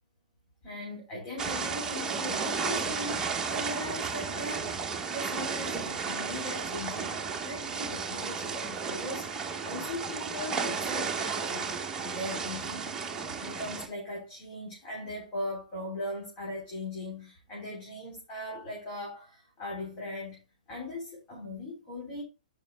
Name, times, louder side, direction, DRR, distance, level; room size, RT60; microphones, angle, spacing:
voice 1, 0.6-13.0 13.4-22.2, left 1 dB, 25° left, 3.9 m, -39 dB
sound 1, 1.4-13.9, right 5 dB, 15° right, 1.2 m, -33 dB
17.0 x 5.8 x 2.3 m
figure-of-eight pair, 120°, 4 cm